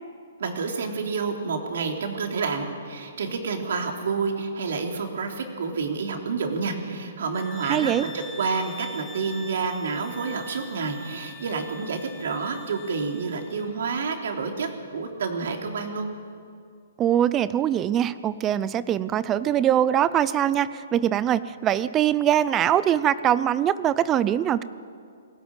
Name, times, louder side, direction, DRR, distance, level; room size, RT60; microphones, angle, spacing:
voice 1, 0.4-16.1, right 4 dB, 70° right, 3 dB, 3.5 m, -29 dB
sound 1, 7.3-13.7, left 3 dB, 10° left, 2.4 m, -44 dB
voice 2, 7.6-8.0 17.0-24.6, right 10 dB, 20° right, 16 dB, 0.6 m, -22 dB
22.0 x 17.5 x 9.0 m, 2.3 s
hypercardioid pair, 150°, 0 cm